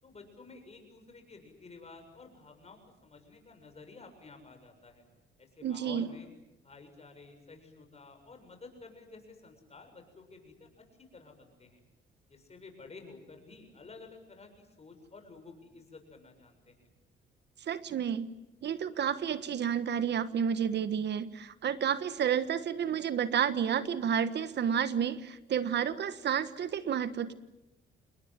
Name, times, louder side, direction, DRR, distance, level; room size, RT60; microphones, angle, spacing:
voice 1, 0.0-5.0 5.4-6.3 6.6-11.8 12.3-16.9, left 3 dB, 30° left, 5 dB, 7.3 m, -52 dB
voice 2, 5.6-6.1 17.7-18.3 18.6-27.3, right 8 dB, 60° right, 14 dB, 1.3 m, -30 dB
28.0 x 20.5 x 9.4 m, 0.95 s
cardioid pair, 90°, 20 cm